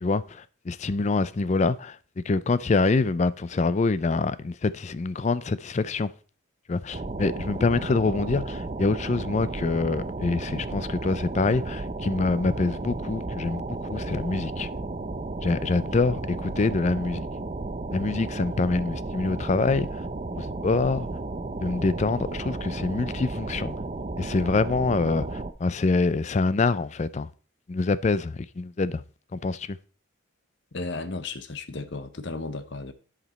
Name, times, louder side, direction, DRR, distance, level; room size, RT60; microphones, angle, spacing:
voice 1, 0.0-6.1 6.7-14.7 15.4-17.3 17.9-20.0 20.3-21.1 21.6-23.7 24.2-27.3 27.7-29.0 29.3-29.8, left 3 dB, 35° left, 0.4 m, -25 dB
sound 1, 6.9-25.5, right 2 dB, 30° right, 0.5 m, -33 dB
voice 2, 30.7-32.9, left 3 dB, 55° left, 0.8 m, -34 dB
11.0 x 5.1 x 4.1 m
head